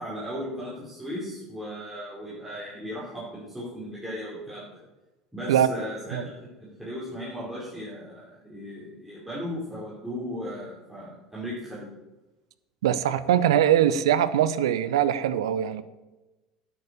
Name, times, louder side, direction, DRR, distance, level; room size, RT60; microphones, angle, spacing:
voice 1, 0.0-4.8 5.3-11.9, equal, 5° right, -9 dB, 4.7 m, -36 dB
voice 2, 12.8-15.8, right 10 dB, 70° right, 14 dB, 0.6 m, -22 dB
9.7 x 8.6 x 6.7 m, 1.1 s
figure-of-eight pair, 75°, 3 cm